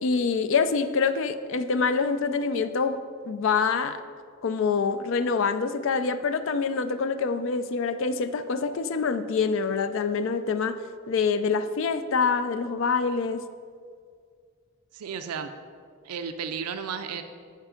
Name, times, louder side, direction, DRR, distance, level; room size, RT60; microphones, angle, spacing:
voice 1, 0.0-3.0 3.2-4.0 4.4-10.8 11.1-13.4, left 5 dB, 60° left, 11 dB, 0.4 m, -25 dB
voice 2, 14.9-15.5 16.0-17.2, right 6 dB, 85° right, 8 dB, 0.4 m, -33 dB
7.4 x 5.3 x 5.0 m, 2.1 s
head